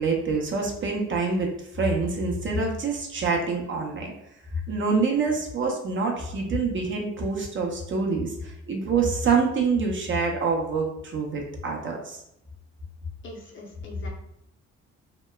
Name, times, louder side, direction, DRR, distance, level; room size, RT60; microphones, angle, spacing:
voice 1, 0.0-4.1 4.7-12.2, right 4 dB, 40° right, 0 dB, 0.5 m, -26 dB
voice 2, 13.2-14.1, left 2 dB, 40° left, -1 dB, 0.7 m, -42 dB
2.8 x 2.0 x 2.2 m, 0.78 s
cardioid pair, 90°, 30 cm